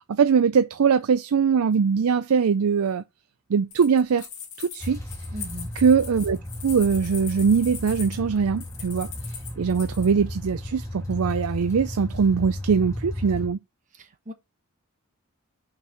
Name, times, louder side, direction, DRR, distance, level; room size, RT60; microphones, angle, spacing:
voice 1, 0.1-3.0 3.5-4.3 4.6-5.0 5.8-6.4 6.6-9.1 9.6-13.6, right 6 dB, 80° right, 0.5 m, -21 dB
sound 1, 3.7-10.1, left 7 dB, 70° left, 2.0 m, -40 dB
sound 2, 4.8-13.5, left 1 dB, 15° left, 2.4 m, -34 dB
voice 2, 5.3-5.8 13.9-14.3, equal, 35° right, 1.2 m, -38 dB
5.8 x 4.4 x 5.0 m
head